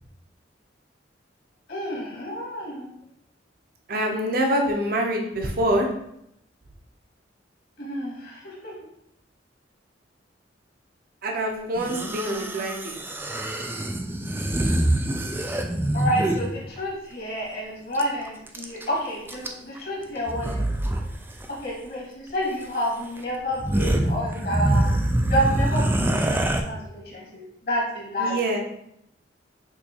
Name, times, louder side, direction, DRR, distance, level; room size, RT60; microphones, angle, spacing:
voice 1, 1.7-2.9 7.8-8.7 15.6-20.7 21.5-24.9 25.3-28.4, equal, 55° left, -3 dB, 1.6 m, -29 dB
voice 2, 3.9-5.9 11.2-13.0 28.2-28.6, right 1 dB, 50° right, 1 dB, 0.6 m, -25 dB
sound 1, 11.8-16.5 17.9-18.0 18.3-18.9 19.3-19.8 20.3-21.0 21.3-21.5 22.6-22.7 23.2-23.3 23.5-26.6, right 1 dB, 10° right, 0.3 m, -25 dB
6.4 x 2.8 x 2.8 m, 0.76 s
head